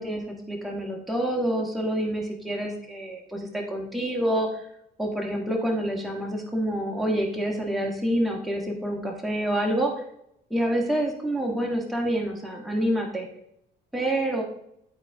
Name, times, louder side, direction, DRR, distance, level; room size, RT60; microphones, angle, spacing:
voice 1, 0.0-4.6 5.0-9.9 10.5-13.3 13.9-14.4, right 1 dB, ahead, 0 dB, 1.6 m, -27 dB
11.0 x 4.2 x 3.7 m, 0.76 s
cardioid pair, 90°, 20 cm